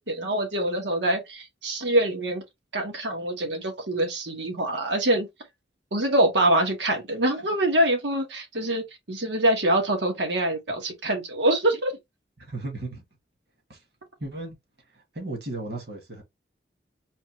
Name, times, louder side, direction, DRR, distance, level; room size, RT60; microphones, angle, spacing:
voice 1, 0.1-2.4 2.7-5.3 5.9-11.9, right 1 dB, 85° right, 1.5 m, -24 dB
voice 2, 12.4-13.0 13.7-13.8 14.2-14.6 14.9-16.2, right 2 dB, 60° right, 2.0 m, -35 dB
4.2 x 3.1 x 3.0 m
head